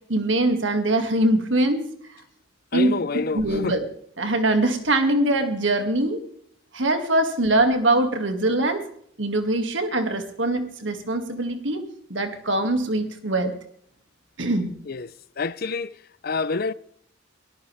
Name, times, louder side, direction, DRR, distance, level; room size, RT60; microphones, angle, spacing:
voice 1, 0.1-1.8 2.7-2.9 3.3-3.9 4.2-6.2 6.7-8.9 9.2-11.8 12.1-13.5 14.4-14.7, right 1 dB, 70° right, 2.3 m, -22 dB
voice 2, 2.7-3.8 14.9-15.1 15.4-16.0 16.2-16.7, left 4 dB, 50° left, 0.6 m, -27 dB
22.5 x 14.0 x 3.5 m
head